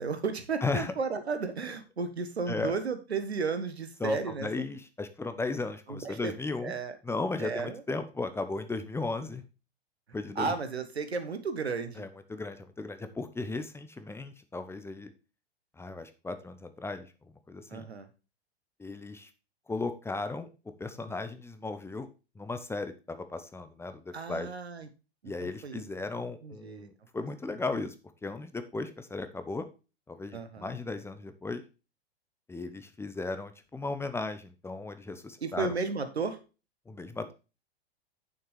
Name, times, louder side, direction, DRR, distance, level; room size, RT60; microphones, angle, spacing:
voice 1, 0.0-4.6 5.9-6.3 6.6-6.9 7.4-7.8 10.4-12.0 17.7-18.1 24.1-24.9 25.4-25.8 26.4-26.9 30.3-30.8 35.4-36.4, right 4 dB, 80° right, 9 dB, 1.5 m, -33 dB
voice 2, 0.6-0.9 2.5-2.7 4.0-6.7 7.0-9.4 10.1-10.5 12.0-15.1 15.8-17.1 17.5-17.9 18.8-19.3 19.7-20.5 20.8-22.1 22.4-24.5 25.2-27.9 28.2-29.6 30.1-31.6 32.5-35.7 36.9-37.3, left 3 dB, 10° left, 10 dB, 0.8 m, -36 dB
9.0 x 6.9 x 3.3 m, 0.31 s
figure-of-eight pair, 100°, 31 cm